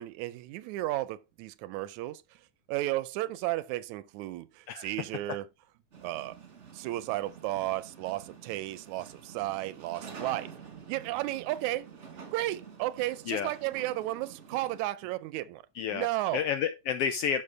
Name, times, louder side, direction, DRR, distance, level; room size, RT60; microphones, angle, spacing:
voice 1, 0.0-2.2 2.7-5.5 6.0-6.4 6.7-10.5 10.9-11.9 12.3-15.6 15.9-16.5, right 16 dB, 85° right, 2.0 m, -33 dB
sound 1, 5.9-14.8, right 6 dB, 35° right, 1.2 m, -48 dB
voice 2, 15.7-16.1 16.3-17.4, left 8 dB, 80° left, 1.4 m, -30 dB
12.0 x 5.4 x 3.4 m
omnidirectional pair, 3.3 m